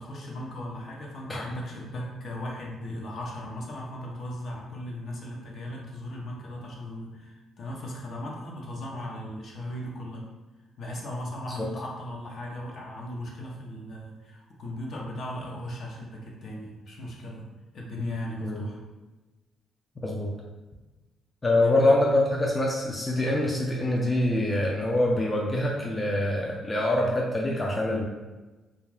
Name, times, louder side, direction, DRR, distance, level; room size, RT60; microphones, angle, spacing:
voice 1, 0.0-10.3 10.8-17.5 17.7-18.8 21.6-21.9, left 1 dB, 60° left, -2 dB, 0.6 m, -37 dB
voice 2, 20.0-20.3 21.4-28.0, left 1 dB, 20° left, -2 dB, 0.4 m, -25 dB
2.5 x 2.2 x 3.3 m, 1.2 s
cardioid pair, 90°, 0 cm